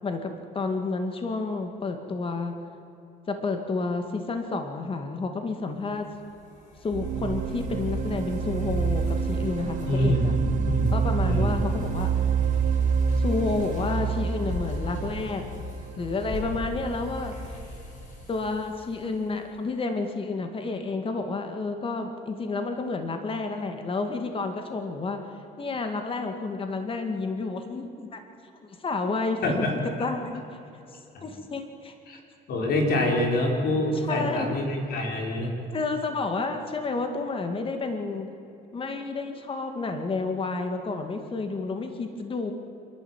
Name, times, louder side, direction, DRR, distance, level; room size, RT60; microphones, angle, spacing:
voice 1, 0.0-2.5 3.3-6.1 6.8-10.3 10.9-12.1 13.2-15.4 16.0-17.3 18.3-25.2 25.6-28.2 28.6-29.7 30.0-30.5 31.2-31.9 34.0-34.5 35.7-38.3 38.7-42.5, left 3 dB, 30° left, 6 dB, 2.2 m, -30 dB
sound 1, 5.9-19.3, left 2 dB, 50° left, 6.4 m, -38 dB
sound 2, 6.9-16.7, right 7 dB, 50° right, 1.2 m, -28 dB
voice 2, 9.8-11.0 11.2-11.6 29.4-29.7 30.0-30.1 31.1-31.2 32.1-32.2 32.5-35.5, left 1 dB, 65° left, 1 dB, 5.0 m, -26 dB
27.0 x 12.0 x 9.1 m, 2.9 s
cardioid pair, 110°, 17 cm